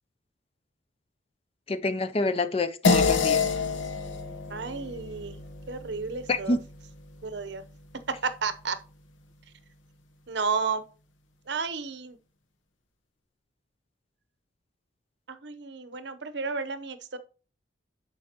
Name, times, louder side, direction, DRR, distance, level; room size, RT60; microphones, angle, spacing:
voice 1, 1.7-3.4 6.3-6.6, left 2 dB, 30° left, 0.4 m, -27 dB
sound 1, 2.8-7.6, left 4 dB, 80° left, 0.9 m, -28 dB
voice 2, 4.5-6.6 7.2-7.6 8.1-8.8 10.3-10.8 11.5-12.2 15.3-17.2, right 4 dB, 60° right, 0.7 m, -32 dB
11.0 x 4.6 x 2.8 m
head